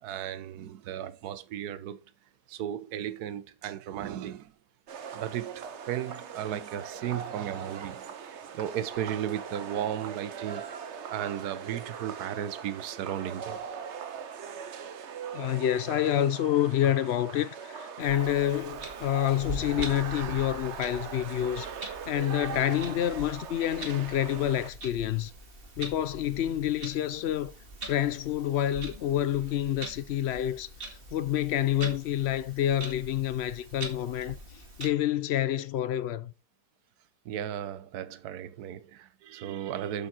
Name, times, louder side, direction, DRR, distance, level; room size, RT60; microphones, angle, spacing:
voice 1, 0.0-2.0 2.5-4.5 5.1-10.6 11.1-13.6 37.2-40.1, right 10 dB, 75° right, 1.3 m, -35 dB
sound 1, 4.9-24.7, right 7 dB, 55° right, 1.0 m, -41 dB
voice 2, 15.3-25.3 25.8-27.5 27.8-34.4 34.8-36.3, left 11 dB, 70° left, 0.6 m, -28 dB
Clock, 18.0-34.9, right 2 dB, 35° right, 2.1 m, -43 dB
8.1 x 7.2 x 4.2 m
omnidirectional pair, 1.7 m